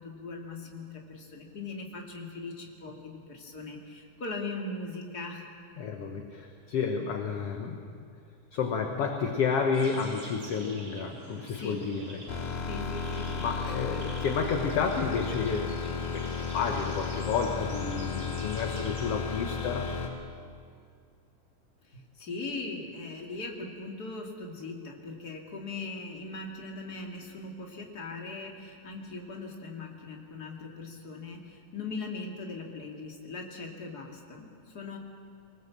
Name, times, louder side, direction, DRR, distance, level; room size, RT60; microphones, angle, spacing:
voice 1, 0.0-5.4 11.6-11.8 12.7-14.1 21.9-35.0, left 3 dB, 30° left, 0 dB, 2.7 m, -40 dB
voice 2, 5.8-7.9 8.5-12.3 13.4-20.0, left 5 dB, 60° left, 4 dB, 1.9 m, -31 dB
sound 1, 9.7-20.0, right 2 dB, 65° right, 5.0 m, -47 dB
sound 2, 12.3-20.1, left 5 dB, 90° left, 3.7 m, -34 dB
24.5 x 20.0 x 7.4 m, 2.3 s
omnidirectional pair, 3.7 m